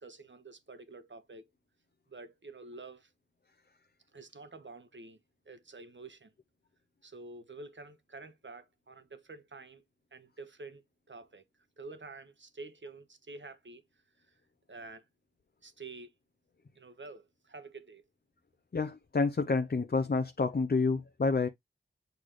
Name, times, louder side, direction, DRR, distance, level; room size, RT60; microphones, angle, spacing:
voice 1, 0.0-1.4 2.1-3.1 4.1-5.2 5.4-6.3 7.0-9.8 10.1-10.8 11.1-11.4 11.8-13.8 14.7-15.0 15.6-16.1 16.7-18.0, right 3 dB, 65° right, 1.2 m, -48 dB
voice 2, 18.7-21.5, left 4 dB, 50° left, 0.6 m, -29 dB
8.0 x 4.1 x 3.1 m
wide cardioid pair, 65°, 21 cm